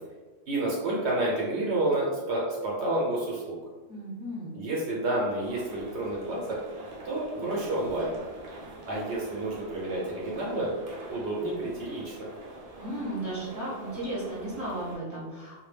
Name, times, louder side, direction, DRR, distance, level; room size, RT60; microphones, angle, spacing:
voice 1, 0.5-3.6 4.5-6.6 7.0-8.2 8.9-10.7 11.1-12.3, right 2 dB, 75° right, -4 dB, 0.9 m, -29 dB
voice 2, 3.9-4.5 12.8-15.6, right 1 dB, 20° left, -9 dB, 0.7 m, -35 dB
sound 1, 5.4-15.0, right 1 dB, 50° right, 0.4 m, -44 dB
2.2 x 2.0 x 3.2 m, 1.3 s
omnidirectional pair, 1.2 m